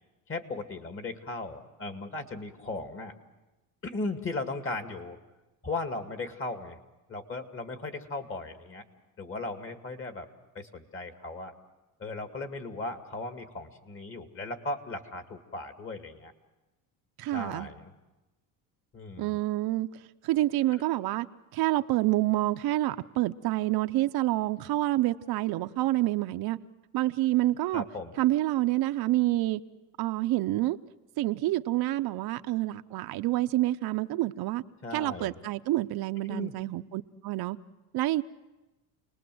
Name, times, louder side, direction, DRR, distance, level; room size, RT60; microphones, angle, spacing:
voice 1, 0.3-3.1 3.8-5.2 5.6-6.8 7.1-8.8 9.2-10.3 10.5-11.5 12.0-16.3 17.3-17.9 18.9-19.4 27.7-28.1 34.8-35.4 36.3-36.6, left 2 dB, 30° left, 7 dB, 2.2 m, -37 dB
voice 2, 17.2-17.7 19.2-21.3 21.5-26.6 26.9-27.8 28.2-29.6 30.0-30.8 31.2-34.6 34.9-37.6 37.9-38.2, right 16 dB, 65° right, 9 dB, 0.7 m, -28 dB
29.0 x 20.0 x 7.8 m, 1.1 s
cardioid pair, 115°, 40 cm